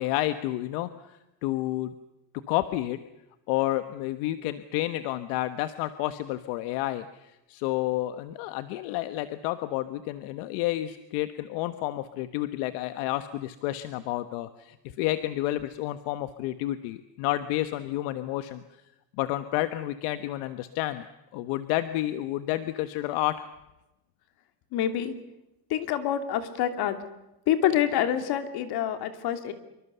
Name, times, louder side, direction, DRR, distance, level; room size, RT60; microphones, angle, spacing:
voice 1, 0.0-1.9 2.5-3.0 3.5-18.6 19.2-21.0 21.3-23.5, left 15 dB, 70° left, 11 dB, 1.3 m, -30 dB
voice 2, 24.7-25.1 25.7-27.0 27.5-29.5, left 10 dB, 50° left, 8 dB, 2.9 m, -26 dB
27.0 x 24.0 x 7.0 m, 0.93 s
cardioid pair, 155°, 49 cm